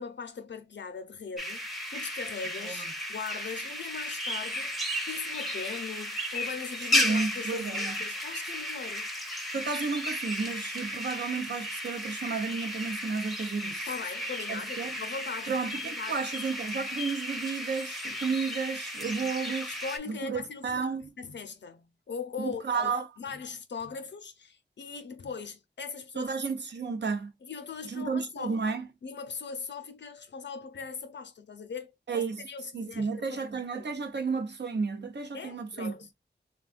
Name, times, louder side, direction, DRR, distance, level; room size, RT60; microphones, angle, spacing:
voice 1, 0.0-9.1 13.9-15.5 15.8-16.2 19.7-22.9 23.2-26.3 27.4-28.6 29.0-33.4 33.7-34.0 35.3-36.1, left 5 dB, 80° left, 0.6 m, -40 dB
sound 1, 1.4-20.0, left 1 dB, ahead, 0.7 m, -34 dB
voice 2, 6.8-8.0 9.5-13.9 14.5-15.0 15.5-19.7 20.1-21.1 22.4-23.1 26.2-27.3 27.8-28.9 32.1-32.4 32.7-35.9, right 5 dB, 75° right, 0.7 m, -32 dB
3.4 x 2.3 x 2.4 m
wide cardioid pair, 85°, 18 cm